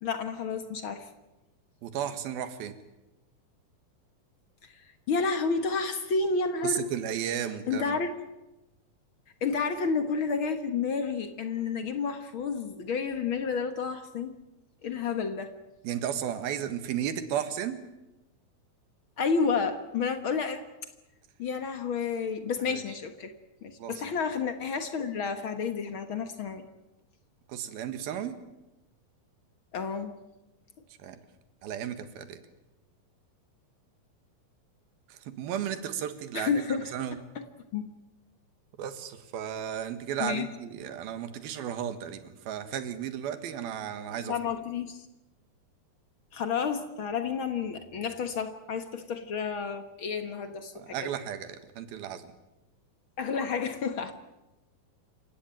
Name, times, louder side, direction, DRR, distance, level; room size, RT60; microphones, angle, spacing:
voice 1, 0.0-1.1 4.7-6.8 7.7-8.1 9.4-14.3 14.8-15.5 19.2-20.6 21.4-23.3 23.6-26.7 29.7-30.2 36.3-36.9 37.3-37.4 37.7-37.9 40.2-40.5 44.2-45.0 46.3-50.9 53.2-54.1, left 5 dB, 60° left, 9 dB, 1.4 m, -30 dB
voice 2, 1.8-2.7 6.6-8.0 15.8-17.8 22.7-22.8 23.8-24.0 27.5-28.3 31.0-31.2 31.6-32.4 35.1-37.2 38.8-44.4 50.8-52.3, right 9 dB, 85° right, 10 dB, 3.4 m, -34 dB
27.5 x 16.0 x 9.0 m, 0.99 s
omnidirectional pair, 4.2 m